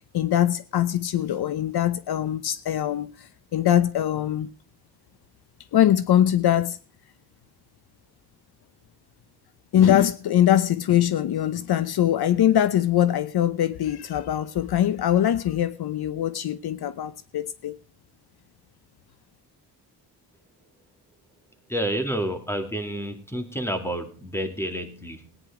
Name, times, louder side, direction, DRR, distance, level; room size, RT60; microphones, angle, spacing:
voice 1, 0.1-3.3 3.5-4.5 5.7-6.8 9.7-17.8, left 11 dB, 70° left, 0.8 m, -22 dB
voice 2, 21.7-25.4, right 1 dB, 5° left, 2.4 m, -29 dB
17.5 x 9.9 x 4.9 m
cardioid pair, 110°, 40 cm